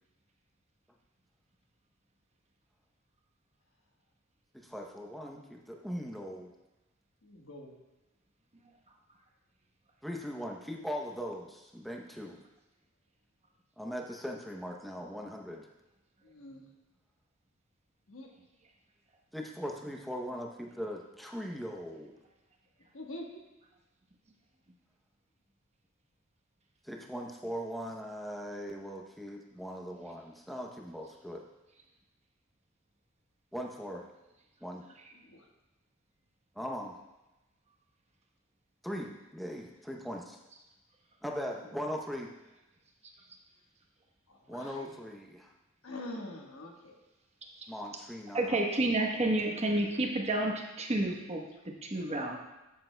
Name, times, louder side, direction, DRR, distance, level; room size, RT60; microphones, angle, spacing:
voice 1, 4.5-6.5 10.0-12.4 13.8-15.7 19.3-22.2 26.8-31.4 33.5-34.1 34.6-34.9 36.6-37.0 38.8-40.4 41.2-42.3 44.5-45.5 47.7-48.6, equal, ahead, 0 dB, 0.7 m, -40 dB
voice 2, 7.2-7.7 16.2-16.7 18.1-18.3 22.9-23.4 35.2-35.4 44.3-44.9 45.8-46.9, left 1 dB, 85° left, 1 dB, 1.3 m, -45 dB
voice 3, 48.3-51.4 51.8-52.4, right 2 dB, 30° right, 1 dB, 1.0 m, -30 dB
14.0 x 6.8 x 2.2 m, 1.0 s
head